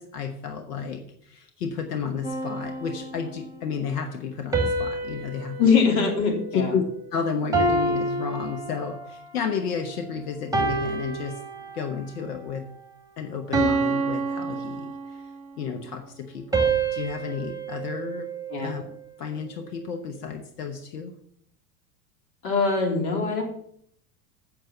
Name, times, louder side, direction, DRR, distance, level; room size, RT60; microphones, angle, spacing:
voice 1, 0.0-5.6 6.5-6.8 7.1-11.4 11.7-12.7 13.2-15.2 15.6-18.3 18.6-18.8 19.2-21.2, left 6 dB, 80° left, 6 dB, 1.2 m, -32 dB
sound 1, 2.2-3.5 4.5-7.0 7.5-9.2 9.8-10.1 10.5-12.1 12.5-12.8 13.5-15.4 16.5-18.9, right 3 dB, 10° right, 2.2 m, -28 dB
voice 2, 5.6-6.7 18.5-18.8 22.4-23.4, left 5 dB, 65° left, 2 dB, 3.3 m, -22 dB
7.7 x 6.6 x 6.9 m, 0.67 s
hypercardioid pair, 90°, 46 cm